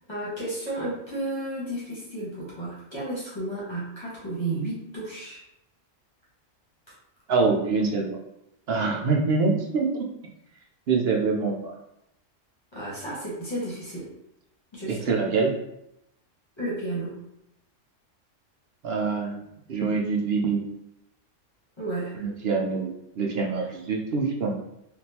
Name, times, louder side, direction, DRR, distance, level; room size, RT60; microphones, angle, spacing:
voice 1, 0.1-5.4 12.7-14.1 14.7-15.1 16.6-17.2 21.8-22.2 23.6-23.7, right 2 dB, 25° left, -7 dB, 1.1 m, -32 dB
voice 2, 7.3-8.2 8.7-10.1 10.9-11.7 14.9-15.6 18.8-19.4 19.7-20.7 22.2-24.5, right 4 dB, 60° right, 0 dB, 0.8 m, -25 dB
3.5 x 2.5 x 2.8 m, 0.81 s
omnidirectional pair, 1.3 m